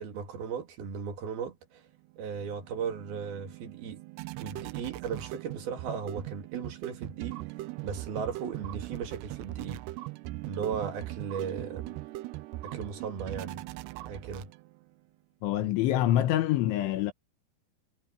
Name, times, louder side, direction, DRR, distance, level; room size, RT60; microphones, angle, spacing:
voice 1, 0.0-1.8 2.2-4.0 4.4-7.6 7.8-9.8 10.5-12.0 12.6-13.6 14.1-14.5, right 6 dB, 60° right, 4.0 m, -36 dB
sound 1, 2.1-14.9, right 18 dB, 80° right, 2.5 m, -40 dB
voice 2, 15.4-17.1, left 13 dB, 85° left, 3.8 m, -26 dB
omnidirectional pair, 5.3 m